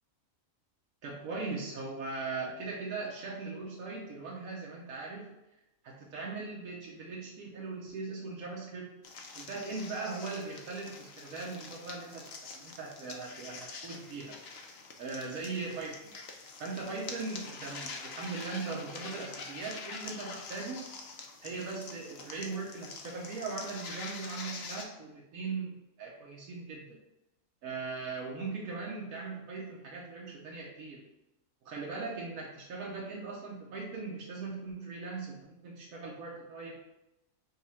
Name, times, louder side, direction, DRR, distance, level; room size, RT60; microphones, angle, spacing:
voice 1, 1.0-5.3 5.8-8.9 9.3-14.4 15.0-16.1 16.6-20.9 21.4-27.0 27.6-31.0 31.6-36.7, right 4 dB, 85° right, -3 dB, 1.2 m, -39 dB
sound 1, 9.0-24.8, left 4 dB, 60° left, 0.7 m, -45 dB
5.3 x 2.4 x 4.2 m, 0.91 s
omnidirectional pair, 1.5 m